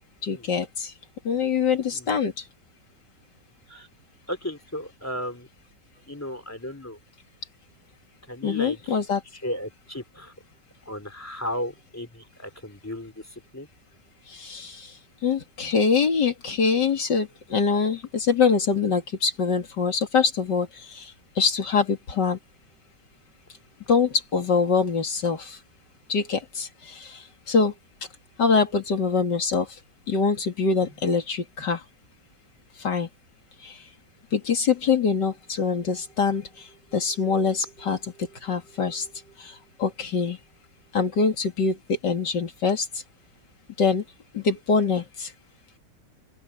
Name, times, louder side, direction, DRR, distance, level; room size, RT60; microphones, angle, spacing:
voice 1, 0.2-0.9 1.2-2.4 8.4-9.2 14.3-15.0 15.2-22.4 23.9-25.6 26.1-27.7 28.4-29.7 30.1-31.8 32.8-33.1 33.6-33.8 34.3-39.1 39.4-40.4 40.9-43.0 43.8-44.0 44.3-45.3, left 5 dB, 70° left, 3.3 m, -24 dB
voice 2, 4.3-5.5 6.1-7.0 8.3-9.0 9.3-10.3 10.8-13.7, left 1 dB, 10° left, 2.8 m, -35 dB
open air
omnidirectional pair, 2.0 m